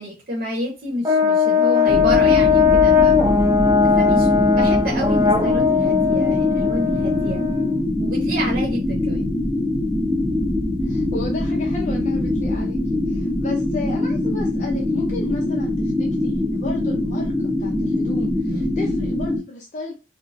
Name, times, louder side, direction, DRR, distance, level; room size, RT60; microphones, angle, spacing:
voice 1, 0.0-3.1 3.7-7.4 8.0-9.3 18.5-18.8, equal, 55° right, -1 dB, 0.9 m, -29 dB
Brass instrument, 1.0-7.8, left 6 dB, 20° right, 0.5 m, -18 dB
sound 1, 1.9-19.4, left 1 dB, 10° left, 1.0 m, -23 dB
voice 2, 10.8-12.8 13.1-17.3 17.6-19.9, left 3 dB, 40° left, -1 dB, 0.6 m, -33 dB
4.0 x 2.1 x 2.6 m, 0.30 s
head